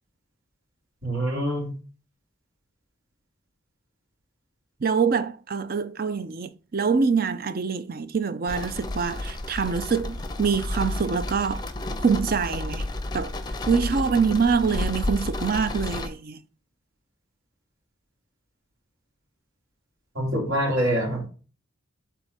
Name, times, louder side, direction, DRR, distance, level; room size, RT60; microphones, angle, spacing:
voice 1, 1.0-1.7 20.1-21.3, equal, 70° right, 2.9 m, -25 dB
voice 2, 4.8-11.6 12.0-12.9 13.1-13.3 13.7-16.4, right 5 dB, 45° right, 0.5 m, -25 dB
sound 1, 8.5-16.1, left 1 dB, 20° left, 0.6 m, -31 dB
7.5 x 3.6 x 5.3 m
head